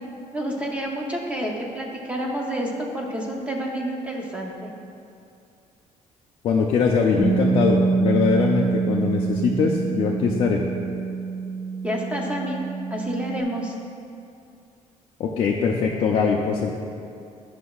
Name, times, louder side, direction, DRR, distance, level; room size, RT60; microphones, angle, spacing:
voice 1, 0.3-4.7 11.8-12.6 12.9-13.8, equal, 10° right, -1 dB, 0.6 m, -29 dB
voice 2, 6.4-10.6 15.2-16.7, left 5 dB, 45° left, -2 dB, 0.4 m, -22 dB
Bass guitar, 7.2-13.4, right 5 dB, 85° right, 1.7 m, -25 dB
11.5 x 5.9 x 2.3 m, 2.5 s
cardioid pair, 175°, 13 cm